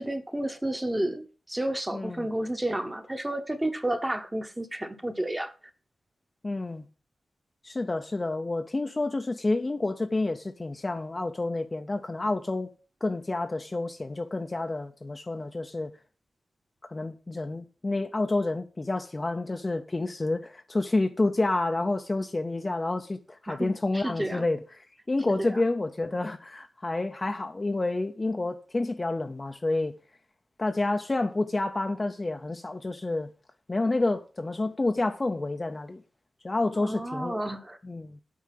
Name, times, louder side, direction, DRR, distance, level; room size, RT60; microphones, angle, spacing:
voice 1, 0.0-5.5 23.5-24.4 25.3-25.6 36.8-37.8, right 1 dB, 10° right, 0.9 m, -31 dB
voice 2, 1.9-2.3 6.4-6.8 7.6-12.7 13.0-15.9 16.9-24.6 25.1-29.9 30.6-33.3 33.7-36.0 36.4-37.4 37.8-38.2, left 2 dB, 20° left, 0.5 m, -29 dB
8.3 x 4.7 x 7.4 m
wide cardioid pair, 180°, 0 cm